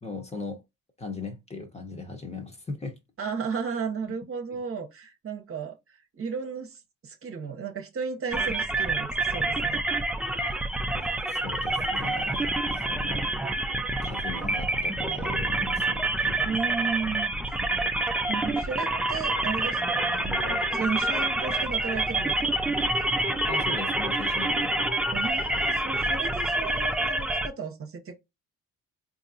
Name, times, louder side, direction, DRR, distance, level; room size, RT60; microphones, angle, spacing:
voice 1, 0.0-0.6 1.0-3.0 4.5-4.6 10.4-10.5 10.9-13.4 14.0-16.5 23.5-24.7, left 3 dB, 20° left, 1.0 m, -39 dB
voice 2, 3.2-5.7 6.1-9.8 16.4-17.3 18.3-23.3 25.1-28.2, right 5 dB, 45° right, 0.9 m, -34 dB
sound 1, 8.3-27.5, right 2 dB, 5° right, 0.4 m, -27 dB
3.9 x 2.7 x 2.7 m
cardioid pair, 90°, 30 cm